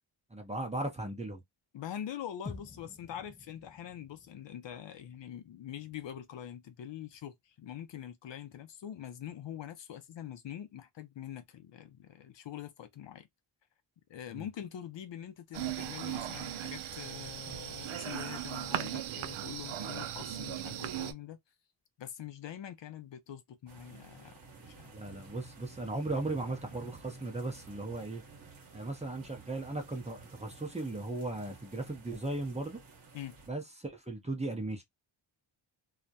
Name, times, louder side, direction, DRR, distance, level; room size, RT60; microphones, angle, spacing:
voice 1, 0.3-1.4 14.3-14.5 24.9-28.2 28.7-32.8 33.5-34.8, right 2 dB, 15° right, 0.6 m, -37 dB
voice 2, 1.7-13.3 14.1-21.4 22.0-24.4 24.7-24.9 33.1-33.3, left 10 dB, 60° left, 0.6 m, -44 dB
sound 1, 2.5-6.8, left 4 dB, 20° left, 0.3 m, -51 dB
sound 2, 15.5-21.1, right 11 dB, 75° right, 0.6 m, -38 dB
sound 3, 23.7-33.5, right 4 dB, 45° right, 1.0 m, -53 dB
2.4 x 2.1 x 2.7 m
cardioid pair, 90°, 49 cm